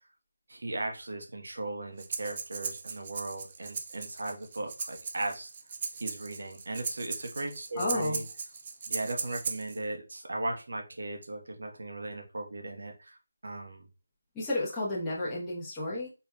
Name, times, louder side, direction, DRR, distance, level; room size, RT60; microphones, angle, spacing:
voice 1, 0.5-5.5 5.9-8.2 8.9-13.2 13.4-13.9, right 2 dB, 70° right, 3 dB, 1.1 m, -37 dB
Breathing, 2.0-9.8, right 5 dB, 30° right, 0.4 m, -38 dB
voice 2, 7.8-8.2 14.3-16.1, left 2 dB, 10° left, -8 dB, 0.9 m, -32 dB
4.6 x 3.3 x 2.2 m, 0.30 s
figure-of-eight pair, 170°, 0 cm